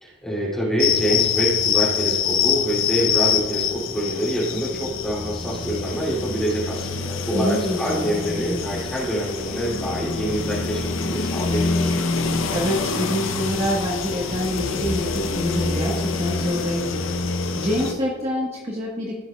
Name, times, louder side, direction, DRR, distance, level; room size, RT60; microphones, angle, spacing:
voice 1, 0.0-11.9, equal, 5° left, -7 dB, 2.6 m, -26 dB
sound 1, 0.8-17.9, left 5 dB, 80° left, 0.7 m, -25 dB
voice 2, 7.3-8.2 12.5-17.1 17.5-19.1, equal, 35° right, -4 dB, 1.2 m, -26 dB
16.0 x 6.2 x 2.3 m, 1.3 s
head